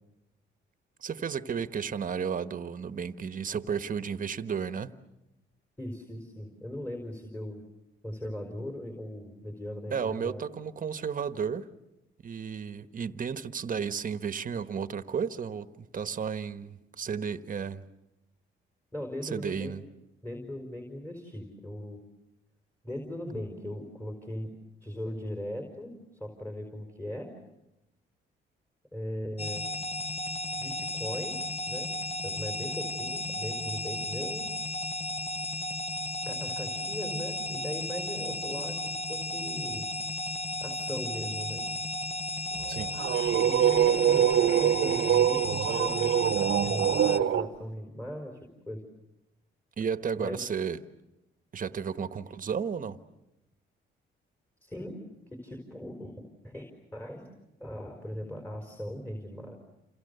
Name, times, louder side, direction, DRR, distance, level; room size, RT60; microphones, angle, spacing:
voice 1, 1.0-4.9 9.9-11.7 12.2-17.8 19.2-19.8 42.7-43.0 49.8-50.8 51.5-53.0, right 6 dB, 45° right, 10 dB, 1.4 m, -33 dB
voice 2, 5.8-7.6 8.0-10.4 18.9-19.7 20.2-22.0 22.8-24.5 24.8-25.9 26.2-27.3 28.9-29.7 30.6-31.4 31.7-31.9 32.2-34.4 36.3-39.8 40.6-41.7 43.4-48.8 50.1-50.5 54.6-55.0 55.3-56.1 56.4-56.6 56.9-57.3 57.6-59.6, left 1 dB, 10° left, 3 dB, 4.6 m, -39 dB
sound 1, 29.4-47.2, left 2 dB, 30° left, 1.0 m, -34 dB
sound 2, 42.6-47.5, right 10 dB, 65° right, 1.1 m, -24 dB
28.5 x 28.0 x 6.8 m, 0.91 s
cardioid pair, 90°, 20 cm